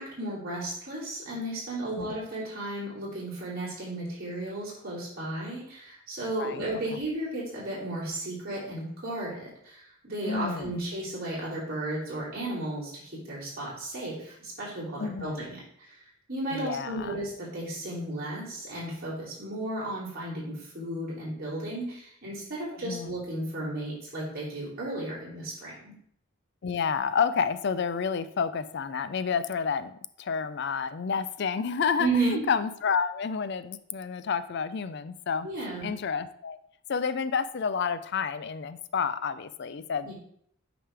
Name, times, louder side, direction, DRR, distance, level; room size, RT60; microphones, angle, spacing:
voice 1, 0.0-25.9 32.0-32.4 35.4-35.9 40.0-40.1, right 2 dB, 45° right, -7 dB, 3.0 m, -34 dB
voice 2, 6.4-7.0 10.3-10.8 15.0-15.5 16.5-17.2 22.8-23.1 26.6-35.5 35.8-36.6 36.9-40.1, left 6 dB, 55° left, 13 dB, 0.4 m, -30 dB
8.8 x 5.1 x 3.4 m, 0.67 s
head